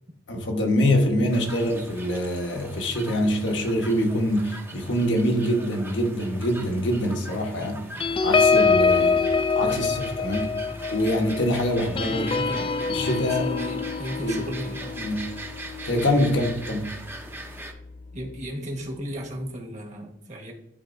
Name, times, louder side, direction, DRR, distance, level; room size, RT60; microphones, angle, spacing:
voice 1, 0.3-7.9 8.2-9.3 9.5-10.5 10.9-12.3 12.9-13.5 14.2-14.4 15.0-15.3 15.8-16.9, left 1 dB, 70° left, 1.2 m, -24 dB
sound 1, 1.3-17.7, right 2 dB, 10° right, 0.7 m, -41 dB
voice 2, 1.5-1.8 9.7-10.0 12.1-15.0 18.1-20.5, equal, 40° right, 1.4 m, -35 dB
sound 2, 8.0-16.9 17.4-17.6 17.9-18.2, left 4 dB, 30° left, 0.3 m, -25 dB
11.5 x 4.1 x 2.6 m
head